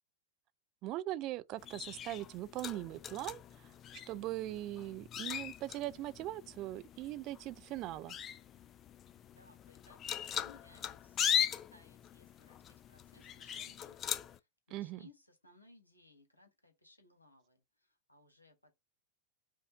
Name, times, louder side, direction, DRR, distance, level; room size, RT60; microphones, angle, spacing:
voice 1, 0.8-3.7 4.1-8.2 14.7-15.0, right 15 dB, 40° right, 0.3 m, -40 dB
sound 1, 1.6-14.4, left 9 dB, 30° left, 0.4 m, -40 dB
voice 2, 9.3-14.0 14.3-18.7, left 2 dB, 85° left, 1.3 m, -63 dB
5.1 x 2.5 x 3.9 m
figure-of-eight pair, 90°, 0 cm